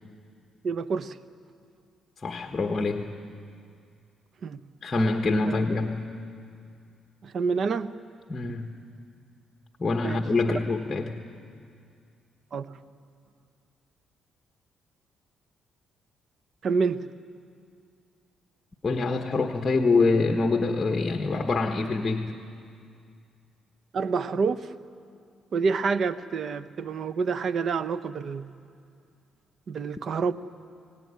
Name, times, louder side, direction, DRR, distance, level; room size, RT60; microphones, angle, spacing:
voice 1, 0.6-1.2 4.4-4.6 5.5-5.7 7.2-7.9 8.5-8.6 10.0-10.2 12.5-12.7 16.6-17.0 23.9-24.7 25.5-28.5 29.7-30.3, right 5 dB, 55° right, 13 dB, 0.9 m, -27 dB
voice 2, 2.2-3.2 4.8-6.2 8.3-8.8 9.8-11.2 18.8-22.4, left 3 dB, 30° left, 3 dB, 1.3 m, -25 dB
25.5 x 18.0 x 9.6 m, 2.3 s
cardioid pair, 90°, 0 cm